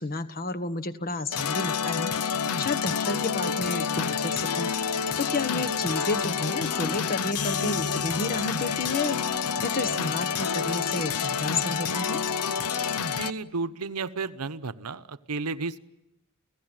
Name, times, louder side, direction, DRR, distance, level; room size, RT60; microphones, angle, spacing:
voice 1, 0.0-4.7 5.2-12.2, left 2 dB, 40° left, 11 dB, 1.4 m, -31 dB
sound 1, 1.3-13.3, left 6 dB, 85° left, 0.9 m, -28 dB
voice 2, 13.2-15.8, right 4 dB, 85° right, 13 dB, 1.0 m, -32 dB
30.0 x 17.0 x 9.1 m, 0.90 s
head